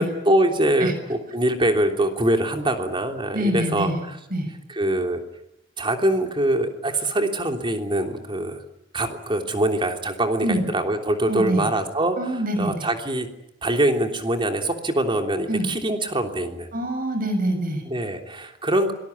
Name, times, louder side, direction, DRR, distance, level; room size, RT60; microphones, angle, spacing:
voice 1, 0.0-3.9 4.7-5.2 5.8-8.6 8.9-13.3 13.6-16.7 17.9-18.9, right 1 dB, 25° right, 4 dB, 3.2 m, -23 dB
voice 2, 3.3-4.0 4.3-4.5 10.4-10.6 11.3-11.7 12.2-12.9 15.5-15.7 16.7-17.8, right 1 dB, 50° right, 7 dB, 7.0 m, -25 dB
25.5 x 20.0 x 9.8 m, 0.86 s
head